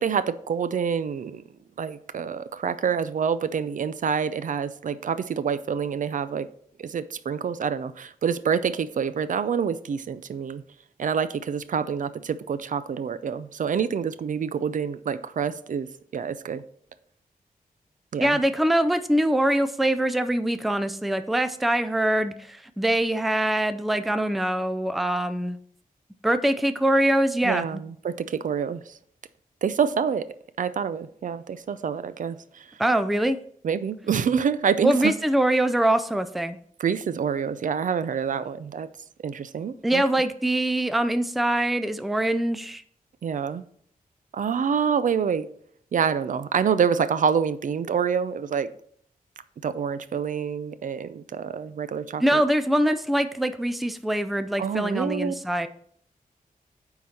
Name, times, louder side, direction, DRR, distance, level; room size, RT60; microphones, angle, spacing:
voice 1, 0.0-1.4 1.8-6.5 6.8-10.6 11.0-16.6 18.1-18.4 27.4-29.0 29.6-30.3 30.6-32.8 33.6-35.1 36.8-38.9 39.2-40.0 43.2-43.6 44.3-45.5 45.9-48.7 49.6-52.4 54.6-55.3, right 7 dB, 65° right, 0.4 m, -27 dB
voice 2, 18.2-25.6 26.2-27.6 32.8-33.4 34.8-36.6 39.8-42.8 52.2-55.7, right 1 dB, ahead, 0.4 m, -23 dB
9.4 x 3.9 x 4.3 m
wide cardioid pair, 155°, 15 cm